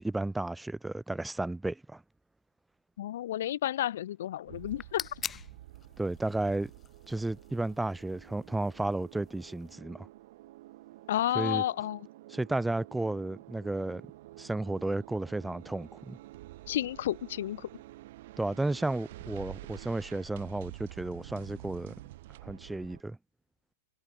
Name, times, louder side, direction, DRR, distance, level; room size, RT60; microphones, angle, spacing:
voice 1, 0.0-2.0 6.0-6.7 7.1-10.1 11.3-11.6 12.3-14.0 14.4-16.2 18.4-21.9 22.4-23.2, right 2 dB, 5° right, 0.5 m, -33 dB
voice 2, 3.0-5.1 11.1-12.0 16.7-17.7, left 12 dB, 70° left, 0.6 m, -31 dB
sound 1, 4.5-9.7, left 7 dB, 20° left, 3.4 m, -45 dB
Here We Come, 4.5-23.0, right 17 dB, 60° right, 3.4 m, -49 dB
hypercardioid pair, 135°, 0 cm